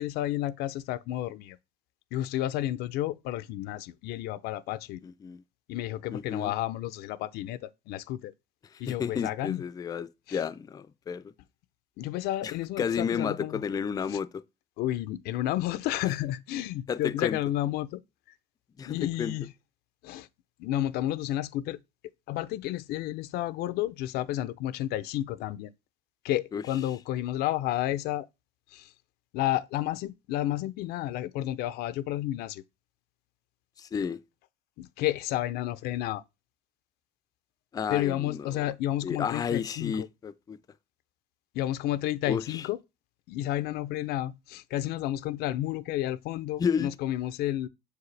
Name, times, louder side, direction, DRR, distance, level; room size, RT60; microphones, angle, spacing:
voice 1, 0.0-1.6 2.1-5.0 5.7-8.3 8.8-9.6 10.3-10.4 12.0-13.6 14.1-14.2 14.8-18.0 18.9-19.5 20.0-20.3 20.6-21.8 22.3-25.7 26.2-28.3 28.7-28.9 29.3-32.6 34.8-36.2 37.9-40.1 41.5-42.8 43.3-47.7, left 14 dB, 85° left, 0.5 m, -31 dB
voice 2, 5.0-5.4 6.1-6.5 8.7-11.2 12.4-14.4 16.9-17.4 18.8-19.3 26.5-26.6 33.8-34.2 37.7-38.7 39.0-40.6 42.3-42.7 46.6-46.9, left 7 dB, 25° left, 0.3 m, -32 dB
6.6 x 4.8 x 3.2 m
cardioid pair, 125°, 16 cm